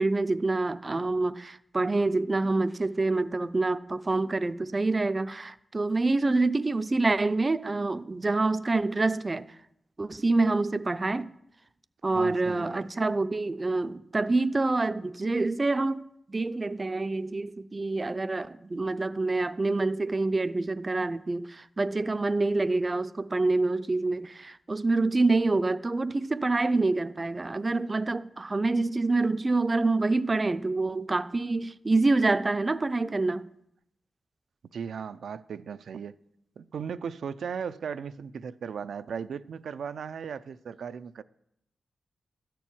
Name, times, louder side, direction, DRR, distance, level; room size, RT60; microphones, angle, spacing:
voice 1, 0.0-9.5 10.0-11.3 12.0-16.0 16.3-33.4, right 3 dB, 30° right, 0.4 m, -26 dB
voice 2, 12.1-12.9 34.7-36.2 36.6-41.2, right 7 dB, 85° right, 0.4 m, -37 dB
13.5 x 4.5 x 8.5 m
wide cardioid pair, 100°, 0 cm